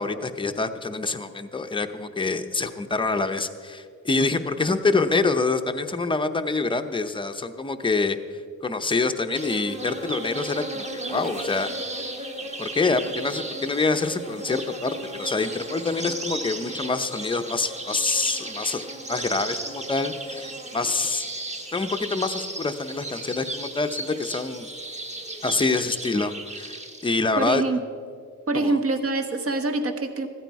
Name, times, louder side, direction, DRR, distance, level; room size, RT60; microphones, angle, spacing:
voice 1, 0.0-8.2 8.6-11.7 12.6-18.8 19.1-21.3 21.7-24.7 25.4-27.6 28.5-28.8, left 3 dB, 15° left, 7 dB, 0.7 m, -26 dB
sound 1, 9.3-27.1, right 2 dB, 20° right, 1.3 m, -35 dB
voice 2, 27.4-27.8 28.5-30.3, right 2 dB, 45° right, 6 dB, 1.2 m, -25 dB
15.5 x 13.5 x 4.7 m, 2.2 s
wide cardioid pair, 130°, 32 cm